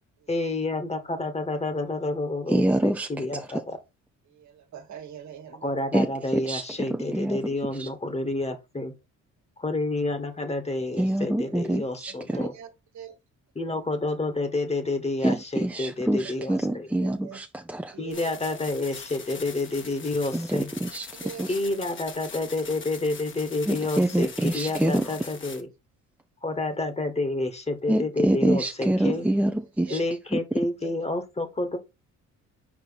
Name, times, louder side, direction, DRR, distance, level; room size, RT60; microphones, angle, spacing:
voice 1, 0.3-3.8 5.6-8.9 9.6-12.5 13.5-16.9 18.0-20.7 21.5-25.7 26.4-29.3 29.9-31.8, left 2 dB, 20° left, 1.5 m, -29 dB
voice 2, 2.5-3.5 5.9-7.4 7.8-7.9 11.0-12.5 15.2-17.9 20.3-21.1 21.4-21.5 23.7-25.1 27.9-30.0 30.3-30.4, right 1 dB, 5° right, 0.6 m, -26 dB
voice 3, 4.3-5.7 11.4-11.5 12.1-13.2 13.7-13.8 16.4-17.4 17.9-18.6 20.8-20.9 21.1-21.5 24.7-25.1 29.0-29.1 29.9-30.0 30.8-30.9, right 8 dB, 65° right, 1.5 m, -44 dB
sound 1, 18.1-25.6, left 5 dB, 40° left, 1.3 m, -42 dB
5.1 x 4.5 x 4.1 m
cardioid pair, 90°, 30 cm